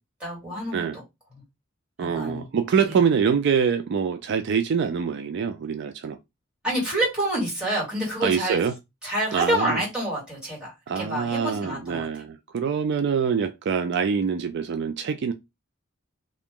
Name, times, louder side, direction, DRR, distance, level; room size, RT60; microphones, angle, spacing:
voice 1, 0.2-1.0 2.0-2.4 2.9-3.0 6.6-8.6 9.0-10.7 11.0-12.1, right 1 dB, 5° right, 2.1 m, -27 dB
voice 2, 2.0-6.2 8.2-8.7 9.3-9.8 10.9-15.3, right 6 dB, 55° right, 0.3 m, -25 dB
2.9 x 2.5 x 3.6 m
head